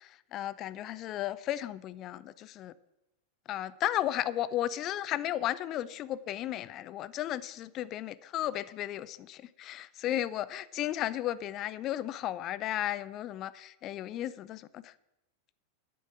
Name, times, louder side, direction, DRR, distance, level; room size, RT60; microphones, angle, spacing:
voice 1, 0.0-2.7 3.5-14.9, left 12 dB, 35° left, 0.6 m, -34 dB
10.5 x 8.6 x 7.4 m
figure-of-eight pair, 90°, 0 cm